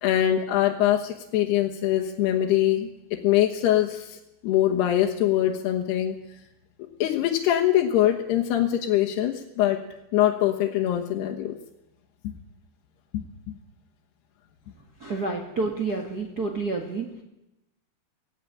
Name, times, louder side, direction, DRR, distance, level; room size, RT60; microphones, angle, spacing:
voice 1, 0.0-4.2 4.4-6.2 7.0-9.8 10.1-11.6 12.2-12.4 13.1-13.6, left 12 dB, 85° left, 1 dB, 3.4 m, -23 dB
voice 2, 15.0-17.2, right 3 dB, 40° right, 2 dB, 1.5 m, -29 dB
17.5 x 17.0 x 10.0 m, 0.90 s
omnidirectional pair, 4.6 m